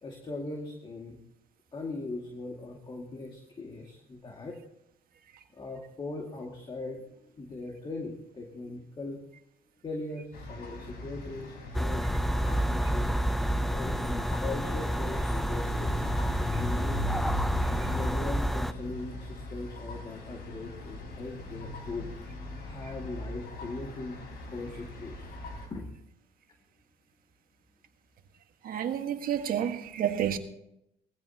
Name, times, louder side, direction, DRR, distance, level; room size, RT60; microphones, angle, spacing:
voice 1, 0.0-1.2 1.7-4.6 5.5-7.1 7.3-9.2 9.8-13.1 13.7-17.1 17.6-22.3 22.6-24.2 24.5-25.3 25.7-25.9, left 2 dB, 30° left, 2.2 m, -40 dB
sound 1, 10.3-25.7, left 1 dB, 65° left, 4.8 m, -40 dB
sound 2, 11.7-18.7, equal, ahead, 0.5 m, -29 dB
voice 2, 28.6-30.4, right 9 dB, 60° right, 1.6 m, -30 dB
21.0 x 15.0 x 2.9 m
cardioid pair, 110°, 17 cm